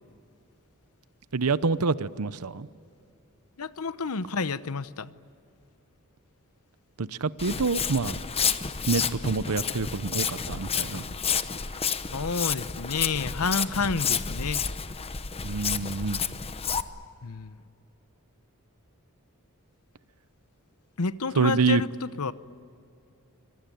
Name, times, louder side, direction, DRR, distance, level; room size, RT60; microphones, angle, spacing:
voice 1, 1.3-2.7 7.0-8.2 8.8-11.0 15.4-16.2 21.4-21.8, right 4 dB, 85° right, 16 dB, 0.8 m, -26 dB
voice 2, 3.6-5.1 12.1-14.6 17.2-17.6 21.0-22.3, left 4 dB, 90° left, 14 dB, 0.9 m, -30 dB
Walk footsteps, 7.4-16.8, left 6 dB, 25° left, 0.9 m, -30 dB
26.0 x 23.0 x 9.4 m, 2.5 s
head